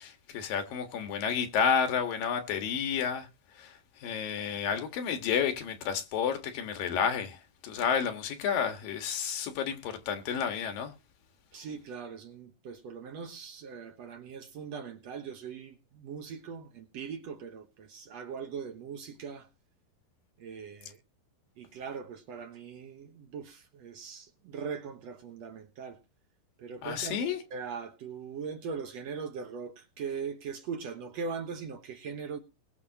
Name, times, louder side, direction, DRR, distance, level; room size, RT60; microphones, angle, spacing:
voice 1, 0.0-3.3 3.6-3.7 4.0-7.4 7.6-10.9 26.8-27.4, left 7 dB, 85° left, 3.3 m, -30 dB
voice 2, 11.5-19.5 20.4-21.0 21.6-26.0 26.6-32.4, right 6 dB, 65° right, 1.9 m, -40 dB
20.5 x 6.9 x 2.9 m
omnidirectional pair, 3.9 m